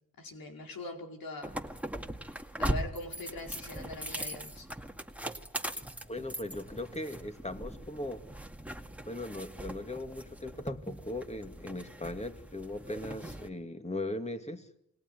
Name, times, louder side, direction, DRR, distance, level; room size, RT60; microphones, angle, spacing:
voice 1, 0.2-1.6 2.6-4.7, left 2 dB, 90° left, 2 dB, 5.0 m, -42 dB
sound 1, 1.4-13.5, right 1 dB, 5° right, 2.0 m, -40 dB
voice 2, 6.1-8.2 9.1-14.7, left 2 dB, 20° left, 7 dB, 2.6 m, -39 dB
29.0 x 20.5 x 9.4 m, 0.78 s
cardioid pair, 80°, 34 cm